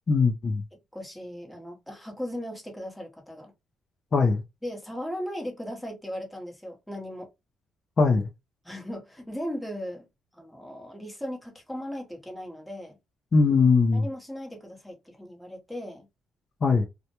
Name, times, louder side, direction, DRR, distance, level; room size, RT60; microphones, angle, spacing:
voice 1, 0.1-0.6 4.1-4.4 8.0-8.3 13.3-14.0 16.6-16.9, left 4 dB, 45° left, 0.5 m, -21 dB
voice 2, 0.9-3.5 4.6-7.3 8.6-10.1 10.3-13.0 13.9-16.1, equal, 5° left, 0.9 m, -37 dB
2.1 x 2.1 x 2.9 m
cardioid pair, 90°, 0 cm